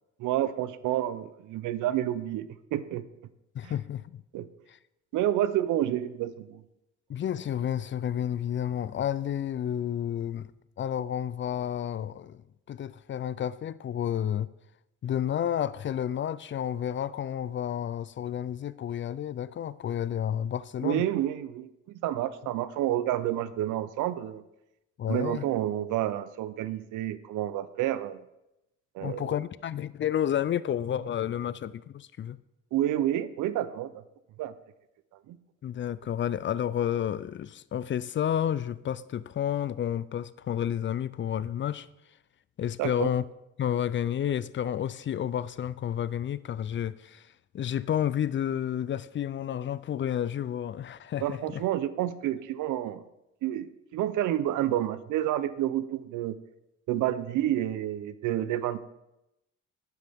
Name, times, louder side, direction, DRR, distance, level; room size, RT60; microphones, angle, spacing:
voice 1, 0.2-3.0 3.6-3.7 4.3-4.5 5.1-6.6 20.8-24.4 25.1-28.2 28.9-29.3 32.7-33.9 34.4-34.5 35.3-35.4 42.8-43.1 51.2-53.0 53.4-56.4 56.9-58.8, right 12 dB, 90° right, 0.6 m, -29 dB
voice 2, 3.5-4.2 4.7-4.8 7.1-10.5 10.8-12.4 12.7-14.5 15.0-21.0 25.0-25.5 29.0-32.4 35.6-41.9 42.6-43.2 43.6-47.3 47.5-51.6, left 10 dB, 40° left, 0.4 m, -31 dB
11.0 x 9.4 x 3.5 m
cardioid pair, 90°, 30 cm